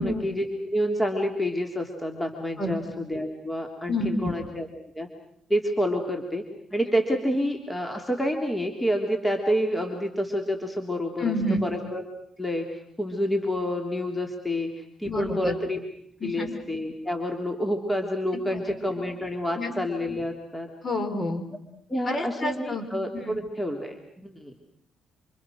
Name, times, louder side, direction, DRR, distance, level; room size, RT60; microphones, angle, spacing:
voice 1, 0.0-4.7 4.9-5.1 5.5-6.4 6.7-12.0 12.4-14.7 15.0-15.8 16.2-20.7 21.9-24.5, equal, 10° left, 3 dB, 3.4 m, -28 dB
voice 2, 3.9-4.4 11.2-11.6 15.0-15.6 16.2-16.5 19.6-19.7 20.8-21.5 22.0-22.8 23.1-23.4, left 1 dB, 30° left, 7 dB, 5.0 m, -28 dB
28.0 x 27.0 x 6.4 m, 0.70 s
cardioid pair, 90°, 0 cm